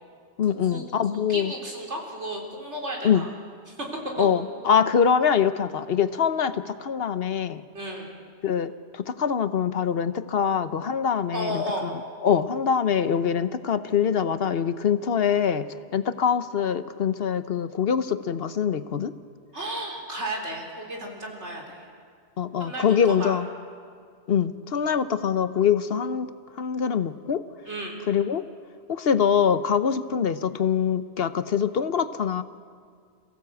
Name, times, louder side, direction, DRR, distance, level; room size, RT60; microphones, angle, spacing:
voice 1, 0.4-1.5 3.0-3.2 4.2-7.6 8.4-11.9 12.2-19.1 22.4-23.5 24.3-26.3 26.6-27.4 28.1-28.4 28.9-32.4, left 7 dB, 60° left, 12 dB, 1.0 m, -24 dB
voice 2, 1.1-3.3 3.7-3.9 4.2-4.3 7.7-8.1 11.3-11.9 19.5-21.9 22.6-23.4 27.7-28.0, right 1 dB, 90° right, 0 dB, 4.0 m, -33 dB
28.0 x 16.5 x 8.2 m, 2.1 s
omnidirectional pair, 1.2 m